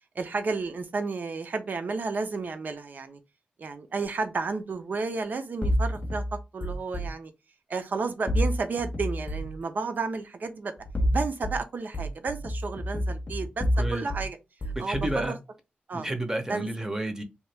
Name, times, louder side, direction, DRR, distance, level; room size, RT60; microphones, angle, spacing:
voice 1, 0.2-3.2 3.6-7.3 7.7-10.7 11.1-14.4 14.8-15.3 15.9-16.1 16.5-16.7, right 4 dB, 60° right, 0.6 m, -32 dB
sound 1, 5.6-7.1 8.3-9.6 10.8-11.6 11.9-14.3 14.6-15.3, equal, 40° left, 0.6 m, -28 dB
voice 2, 13.8-14.1 14.8-15.4 15.9-17.2, right 1 dB, 15° right, 0.7 m, -30 dB
2.9 x 2.3 x 3.3 m
wide cardioid pair, 95°, 3 cm